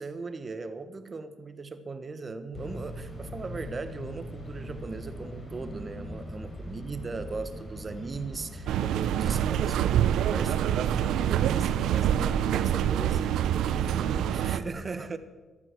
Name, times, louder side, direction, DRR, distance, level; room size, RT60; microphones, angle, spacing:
voice 1, 0.0-15.2, right 3 dB, 35° right, 11 dB, 1.2 m, -38 dB
sound 1, 2.5-9.5, equal, 30° left, 4.4 m, -40 dB
sound 2, 8.7-14.6, right 10 dB, 80° right, 0.6 m, -26 dB
14.5 x 12.5 x 6.1 m, 1.3 s
cardioid pair, 90°, 0 cm